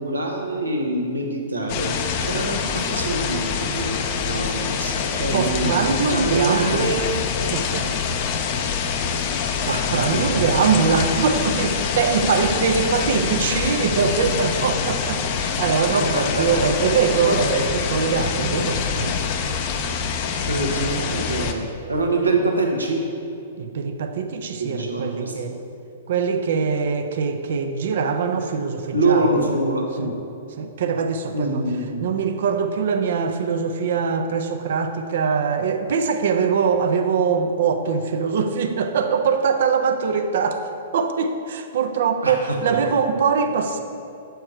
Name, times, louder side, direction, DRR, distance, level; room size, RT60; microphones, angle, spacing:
voice 1, 0.0-1.9 2.2-4.0 4.2-7.2 9.7-10.8 15.9-16.5 16.8-17.0 17.3-17.4 20.5-23.0 24.6-25.5 28.9-30.1 31.3-32.0 42.2-42.6, right 2 dB, 80° right, 1 dB, 1.0 m, -25 dB
sound 1, 1.7-21.5, left 6 dB, 40° left, 0.5 m, -25 dB
voice 2, 5.3-6.9 7.5-7.9 9.7-19.2 23.6-25.6 26.1-29.5 30.0-30.1 30.6-31.6 32.0-43.8, right 5 dB, 60° right, 6 dB, 0.5 m, -22 dB
6.5 x 4.6 x 4.5 m, 2.6 s
figure-of-eight pair, 115°, 0 cm